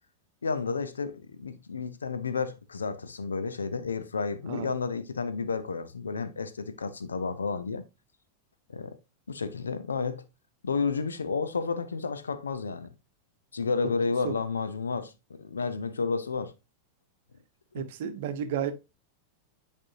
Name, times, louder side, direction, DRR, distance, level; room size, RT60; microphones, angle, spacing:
voice 1, 0.4-7.8 8.7-9.0 9.3-10.2 10.6-12.9 13.5-16.5 17.8-17.9, left 4 dB, 75° left, 0.7 m, -31 dB
voice 2, 17.7-18.7, right 9 dB, 55° right, 0.9 m, -32 dB
8.8 x 4.4 x 2.6 m
figure-of-eight pair, 90°, 0 cm